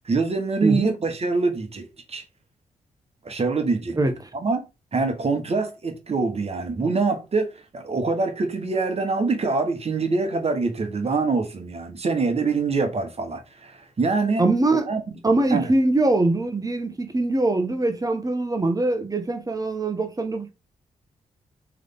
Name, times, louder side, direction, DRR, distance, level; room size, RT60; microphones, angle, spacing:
voice 1, 0.1-2.2 3.2-4.0 4.3-4.6 4.9-13.7 14.0-14.5 14.9-15.0 15.5-15.7, right 4 dB, 45° right, 1.3 m, -24 dB
voice 2, 0.6-0.9 3.9-4.1 14.4-14.9 15.2-20.5, right 2 dB, 25° right, 1.1 m, -22 dB
3.5 x 3.3 x 3.9 m
supercardioid pair, 50°, 15 cm